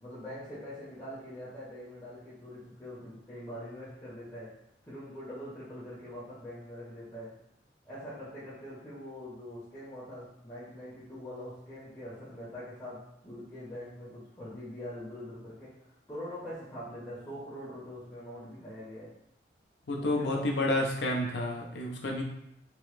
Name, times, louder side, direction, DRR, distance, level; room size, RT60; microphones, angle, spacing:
voice 1, 0.0-4.6 4.8-7.4 7.9-19.1 20.0-20.6, equal, 15° left, -11 dB, 0.7 m, -43 dB
voice 2, 19.9-22.2, left 1 dB, 75° left, 0 dB, 0.6 m, -30 dB
3.0 x 2.1 x 3.1 m, 0.77 s
head